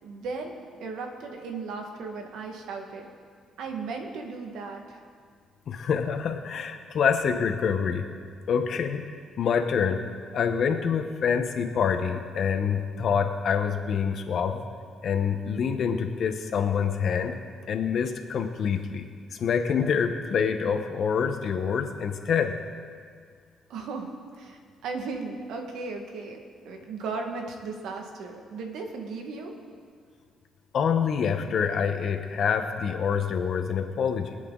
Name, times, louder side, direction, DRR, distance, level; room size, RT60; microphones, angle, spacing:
voice 1, 0.0-3.1 3.6-5.0 23.7-24.1 24.3-26.4 26.7-29.5, right 4 dB, 85° right, 3 dB, 1.9 m, -36 dB
voice 2, 5.7-8.1 8.5-9.0 9.4-10.0 10.3-14.6 15.0-17.3 17.7-19.1 19.4-22.6 30.7-34.4, left 6 dB, 60° left, 6 dB, 1.2 m, -26 dB
24.0 x 8.4 x 4.0 m, 2.1 s
cardioid pair, 90°, 0 cm